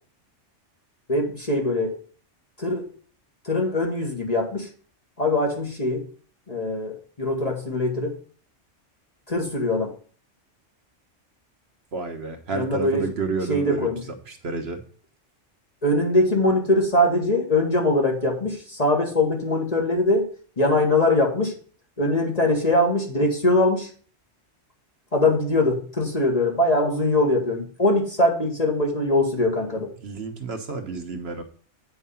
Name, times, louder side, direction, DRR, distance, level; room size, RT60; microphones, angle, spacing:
voice 1, 1.1-2.0 2.6-2.9 3.4-4.7 5.2-6.0 6.5-8.2 9.3-9.9 12.5-13.0 13.5-14.0 15.8-20.3 20.6-21.6 22.0-23.9 25.1-29.9, left 1 dB, 35° left, 0 dB, 1.5 m, -22 dB
voice 2, 11.9-14.8 29.8-31.4, right 4 dB, 60° right, 6 dB, 1.1 m, -31 dB
8.4 x 4.7 x 5.6 m, 0.43 s
omnidirectional pair, 1.2 m